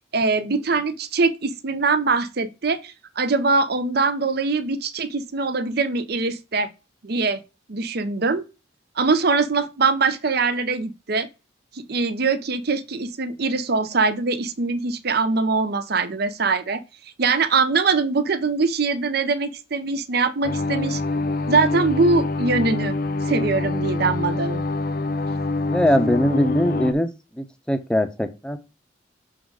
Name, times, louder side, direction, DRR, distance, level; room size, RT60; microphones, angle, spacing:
voice 1, 0.1-6.7 7.0-7.4 7.7-8.4 9.0-11.3 11.7-16.8 17.2-21.0 21.5-22.9 23.3-24.6, right 4 dB, 55° right, 0.7 m, -22 dB
sound 1, 20.4-26.9, left 2 dB, 50° left, 0.6 m, -25 dB
voice 2, 25.7-28.6, equal, 5° left, 0.6 m, -22 dB
6.3 x 3.9 x 4.7 m
head